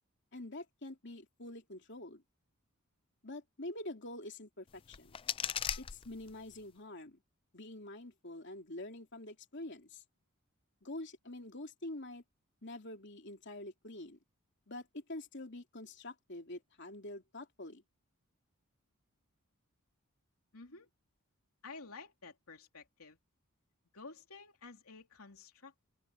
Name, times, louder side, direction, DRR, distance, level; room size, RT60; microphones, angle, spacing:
voice 1, 0.3-2.2 3.2-5.2 5.8-7.2 7.5-10.0 10.8-12.2 12.6-14.2 14.7-17.8, left 1 dB, 55° left, 3.2 m, -46 dB
sound 1, 4.7-6.7, left 9 dB, 25° left, 0.3 m, -39 dB
voice 2, 20.5-20.9 21.6-23.2 23.9-25.9, left 4 dB, 85° left, 3.1 m, -52 dB
head